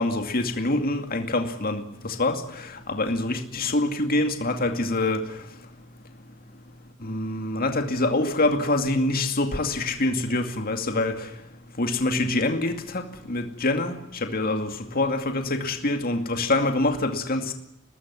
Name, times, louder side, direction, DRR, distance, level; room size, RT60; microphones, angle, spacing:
voice 1, 0.0-5.2 7.0-11.3 11.8-14.0 14.2-17.5, left 2 dB, 45° left, 5 dB, 2.4 m, -25 dB
23.0 x 20.0 x 9.7 m, 0.83 s
head